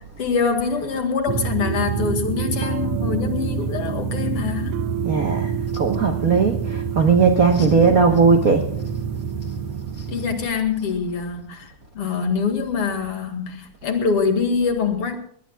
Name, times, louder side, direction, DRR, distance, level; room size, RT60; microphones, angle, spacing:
voice 1, 0.2-4.8 7.6-7.9 10.1-15.2, left 5 dB, 50° left, 2.7 m, -24 dB
sound 1, 1.3-10.5, right 6 dB, 80° right, 1.2 m, -26 dB
voice 2, 5.0-8.7 10.0-10.1, right 5 dB, 65° right, 0.8 m, -18 dB
21.5 x 19.5 x 2.3 m
omnidirectional pair, 3.5 m